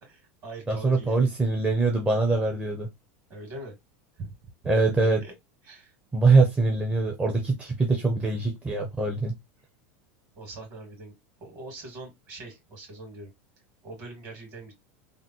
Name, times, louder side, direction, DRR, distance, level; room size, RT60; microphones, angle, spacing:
voice 1, 0.0-1.2 3.3-3.8 4.2-4.7 5.2-5.3 5.6-5.9 9.6-9.7 10.3-11.1 11.4-13.3 13.8-14.7, right 2 dB, 50° right, 2.3 m, -42 dB
voice 2, 0.7-2.9 4.6-5.2 6.1-9.3, right 3 dB, 15° right, 0.6 m, -23 dB
3.5 x 2.0 x 2.9 m
hypercardioid pair, 95°, 7 cm